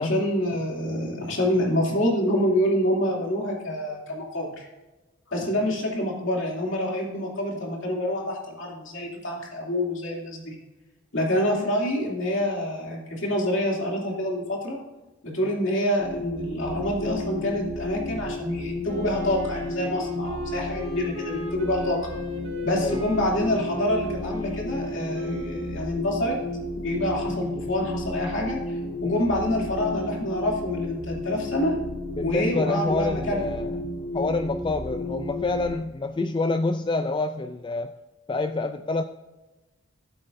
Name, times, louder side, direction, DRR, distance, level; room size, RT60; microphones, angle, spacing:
voice 1, 0.0-4.7 5.3-10.6 11.1-14.8 15.2-22.0 22.6-26.4 26.8-31.7 32.2-33.6, left 1 dB, 65° left, -2 dB, 2.7 m, -27 dB
sound 1, 16.0-35.8, left 1 dB, 40° left, 1.3 m, -33 dB
Wind instrument woodwind instrument, 18.8-26.0, right 3 dB, 85° right, 3.0 m, -40 dB
voice 2, 32.2-33.7 34.1-37.9 38.3-39.0, left 3 dB, 25° left, 9 dB, 0.3 m, -27 dB
15.0 x 7.8 x 2.6 m, 1.1 s
head